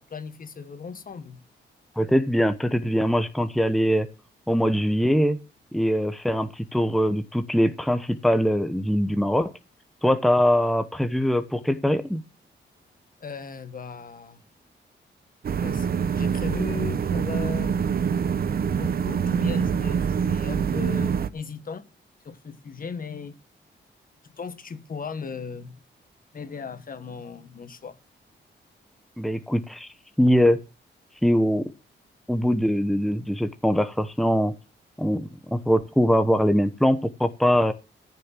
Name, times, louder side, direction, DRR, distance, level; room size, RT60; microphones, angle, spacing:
voice 1, 0.0-1.4 13.2-14.4 15.6-17.8 18.8-21.8 22.2-23.4 24.4-25.8 26.3-28.0, left 5 dB, 45° left, 1.5 m, -37 dB
voice 2, 2.0-4.1 4.5-5.4 5.7-9.5 10.0-12.2 29.2-29.9 30.2-30.6 31.2-31.7 32.3-34.5 35.0-37.7, equal, ahead, 0.9 m, -22 dB
sound 1, 15.4-21.3, right 7 dB, 50° right, 0.8 m, -25 dB
14.0 x 6.5 x 7.4 m
wide cardioid pair, 120°, 20 cm